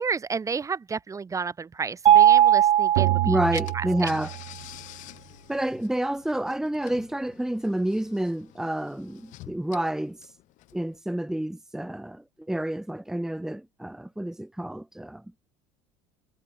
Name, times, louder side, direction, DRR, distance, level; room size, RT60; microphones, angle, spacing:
voice 1, 0.0-3.4 3.7-4.1, right 5 dB, 20° right, 1.6 m, -31 dB
Mallet percussion, 2.1-4.0, right 11 dB, 45° right, 1.3 m, -19 dB
sound 1, 3.0-4.9, right 22 dB, 90° right, 3.2 m, -29 dB
Car / Engine, 3.1-3.2 3.5-11.0, left 18 dB, 60° left, 5.3 m, -48 dB
voice 2, 3.2-4.3 5.5-10.2 10.7-15.2, right 1 dB, 5° right, 1.4 m, -29 dB
supercardioid pair, 110°, 14 cm